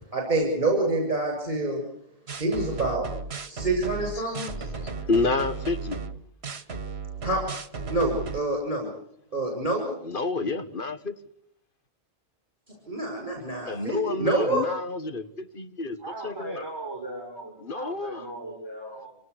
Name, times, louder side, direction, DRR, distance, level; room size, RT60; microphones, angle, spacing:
voice 1, 0.1-1.8 2.4-3.1 3.5-4.5 7.2-7.4 7.7-8.9 9.3-10.0 12.9-14.6, right 2 dB, 40° right, 1 dB, 6.9 m, -27 dB
sound 1, 2.3-8.4, right 4 dB, 70° right, 1.8 m, -35 dB
voice 2, 4.8-6.0 10.0-11.2 13.7-16.6 17.6-18.3, left 3 dB, 50° left, 9 dB, 1.8 m, -29 dB
voice 3, 16.0-19.1, right 2 dB, 20° right, -1 dB, 7.2 m, -38 dB
26.5 x 19.0 x 8.3 m, 0.70 s
omnidirectional pair, 1.1 m